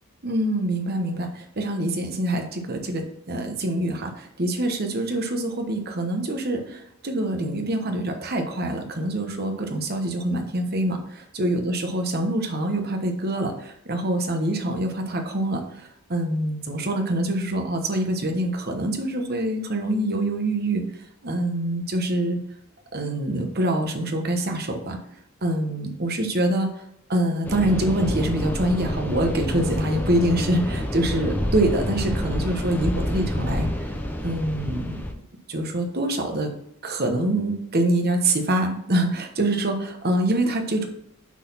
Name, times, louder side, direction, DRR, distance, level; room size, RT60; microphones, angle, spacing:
voice 1, 0.2-20.8 21.2-22.4 22.9-25.0 25.4-26.7 27.1-33.7 34.2-35.0 35.5-36.5 36.8-40.9, right 1 dB, 45° right, 4 dB, 1.1 m, -25 dB
sound 1, 27.4-35.1, left 1 dB, 10° left, 0.7 m, -28 dB
6.2 x 4.1 x 5.6 m, 0.75 s
head